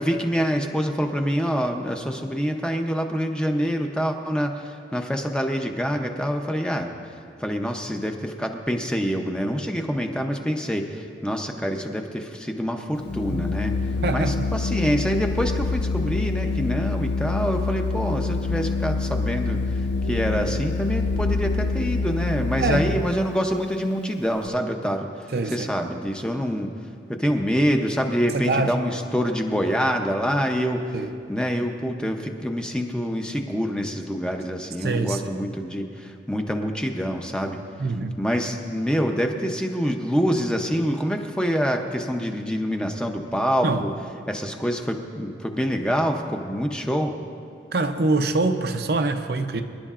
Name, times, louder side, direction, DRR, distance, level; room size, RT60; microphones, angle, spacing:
voice 1, 0.0-7.0 7.4-13.7 14.1-19.8 20.1-26.7 27.1-30.9 31.3-37.6 38.2-43.9 44.3-47.1, equal, 5° left, 3 dB, 0.6 m, -26 dB
Organ, 13.0-23.3, left 3 dB, 70° left, 0.4 m, -26 dB
voice 2, 14.0-14.5 20.0-20.2 22.6-23.0 25.3-25.7 28.3-28.8 30.9-31.1 34.8-35.2 37.8-38.2 43.6-43.9 47.7-49.6, right 3 dB, 60° right, 6 dB, 0.6 m, -24 dB
25.0 x 11.0 x 2.5 m, 2.4 s
head